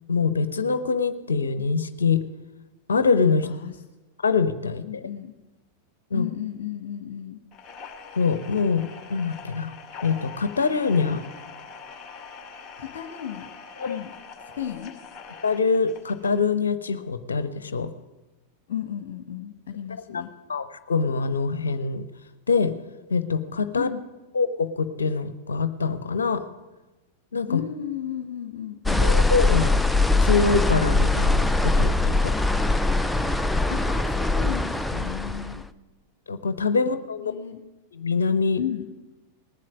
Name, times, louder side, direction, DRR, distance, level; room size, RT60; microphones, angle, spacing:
voice 1, 0.1-2.2 2.9-3.5 4.2-5.0 6.1-6.2 8.2-8.8 9.1-9.7 10.0-11.2 13.8-14.0 15.4-17.9 20.1-20.2 20.5-22.0 22.5-22.7 23.1-23.9 24.3-26.4 27.3-27.6 29.0-29.7 30.2-31.9 32.2-32.3 36.3-37.3 37.9-38.6, left 4 dB, 70° left, 12 dB, 0.9 m, -24 dB
voice 2, 3.4-3.8 4.8-5.3 6.1-7.4 12.8-13.5 13.8-14.1 14.6-15.0 18.7-20.3 23.8-24.0 27.5-29.1 33.7-35.7 37.2-37.6 38.6-38.9, left 10 dB, 55° left, 5 dB, 1.5 m, -34 dB
sound 1, 7.5-16.4, left 5 dB, 25° left, 2.3 m, -43 dB
sound 2, 28.8-35.6, left 2 dB, 5° left, 0.5 m, -22 dB
19.5 x 7.5 x 9.4 m, 1.1 s
figure-of-eight pair, 90°, 0 cm